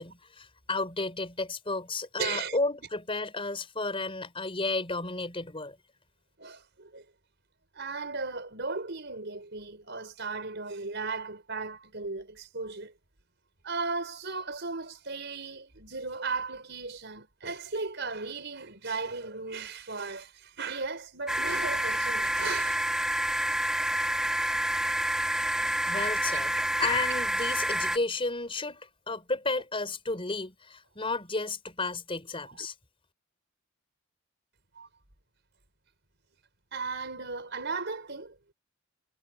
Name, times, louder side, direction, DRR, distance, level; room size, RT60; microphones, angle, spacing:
voice 1, 0.0-5.8 25.9-26.5 26.8-32.7, left 3 dB, 25° left, 4.8 m, -32 dB
voice 2, 2.2-2.6 6.4-7.0 7.7-12.9 13.6-22.9 26.3-26.4 26.8-27.0 27.5-27.6 32.5-32.7 34.8-34.9 36.7-38.4, right 4 dB, 55° right, 5.5 m, -36 dB
sound 1, 21.3-28.0, right 1 dB, 5° right, 3.0 m, -28 dB
head